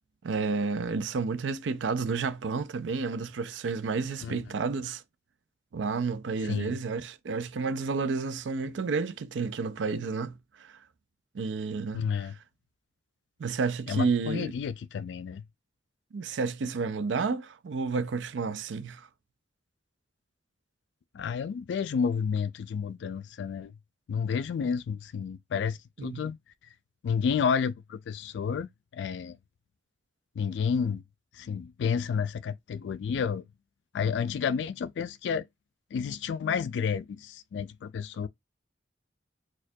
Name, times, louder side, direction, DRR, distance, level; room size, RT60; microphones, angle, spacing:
voice 1, 0.2-5.0 5.7-10.3 10.6-10.7 11.3-12.1 13.4-14.4 16.1-19.1 26.0-26.2, right 4 dB, 90° right, 0.4 m, -31 dB
voice 2, 6.4-6.8 11.9-12.4 13.9-15.4 21.1-23.7 24.1-26.4 27.0-29.4 30.4-31.0 31.3-33.5 33.9-35.5 35.9-38.3, left 6 dB, 70° left, 0.3 m, -30 dB
4.2 x 2.3 x 2.7 m
head